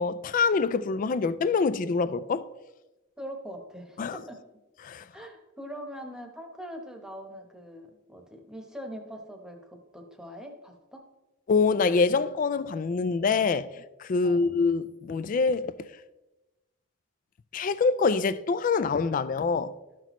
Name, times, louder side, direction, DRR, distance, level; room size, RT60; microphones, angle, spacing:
voice 1, 0.0-2.5 4.0-4.2 4.8-5.1 11.5-15.7 17.5-19.7, left 4 dB, 45° left, 0.3 m, -25 dB
voice 2, 3.2-4.4 5.1-11.0 14.2-14.5, equal, 5° right, 1.0 m, -42 dB
12.5 x 6.0 x 3.0 m
head